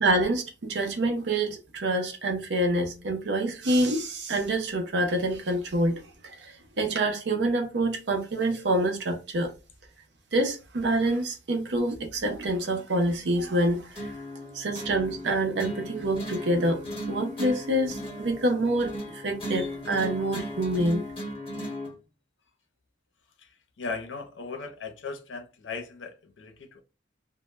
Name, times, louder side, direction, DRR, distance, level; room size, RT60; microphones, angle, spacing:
voice 1, 0.0-6.5 6.8-9.5 10.3-14.1 14.5-16.8 17.1-21.0, right 1 dB, 65° right, 0.6 m, -26 dB
sound 1, 13.9-21.9, equal, 30° left, 1.0 m, -36 dB
voice 2, 23.8-26.8, left 4 dB, 80° left, 0.6 m, -37 dB
2.1 x 2.0 x 3.1 m
head